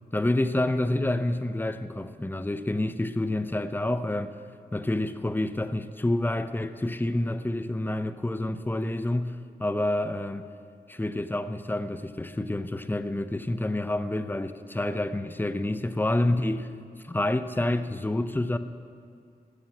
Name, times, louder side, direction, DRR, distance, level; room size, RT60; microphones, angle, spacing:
voice 1, 0.1-4.4 4.7-10.5 10.9-16.7 17.1-18.6, left 1 dB, 10° left, 11 dB, 0.6 m, -28 dB
13.0 x 7.3 x 8.6 m, 2.3 s
cardioid pair, 60°, 17 cm